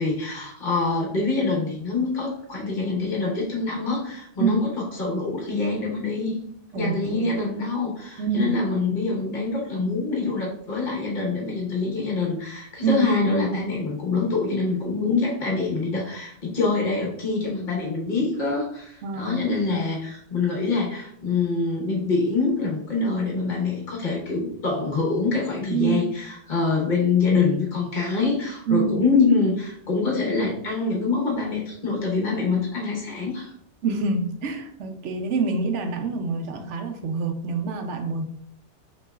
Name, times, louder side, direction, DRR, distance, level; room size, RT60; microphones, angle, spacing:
voice 1, 0.0-4.7 5.0-6.4 6.7-33.5, left 4 dB, 45° left, -2 dB, 1.2 m, -25 dB
voice 2, 6.7-7.4 8.2-8.5 12.8-13.0 19.0-19.4 25.7-26.0 28.7-29.0 33.8-38.2, right 5 dB, 90° right, 6 dB, 1.0 m, -26 dB
5.5 x 3.0 x 2.3 m, 0.67 s
omnidirectional pair, 1.2 m